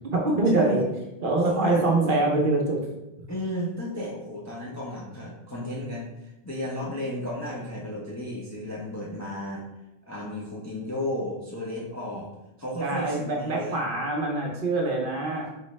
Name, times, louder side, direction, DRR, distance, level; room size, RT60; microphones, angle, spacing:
voice 1, 0.1-0.8 1.2-2.8 12.8-15.5, right 2 dB, 55° right, -1 dB, 0.8 m, -24 dB
voice 2, 1.4-1.9 3.3-9.6 10.1-12.3 12.6-13.8, left 1 dB, 25° left, -4 dB, 0.4 m, -33 dB
4.0 x 3.1 x 3.1 m, 0.92 s
omnidirectional pair, 1.2 m